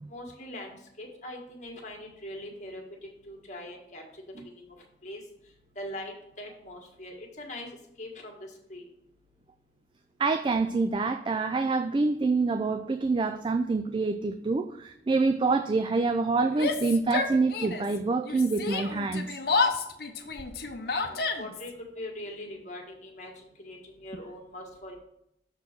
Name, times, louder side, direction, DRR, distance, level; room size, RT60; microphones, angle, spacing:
voice 1, 0.1-2.8 3.3-4.0 4.4-4.5 5.0-5.2 5.7-7.7 8.0-8.4 8.7-8.8 21.0-24.9, left 1 dB, 45° left, 1 dB, 1.6 m, -41 dB
voice 2, 10.2-19.4, right 3 dB, 30° right, 9 dB, 0.3 m, -26 dB
Yell, 16.5-18.0 18.2-21.7, left 4 dB, 60° left, 0.8 m, -30 dB
7.0 x 4.3 x 6.4 m, 0.78 s
head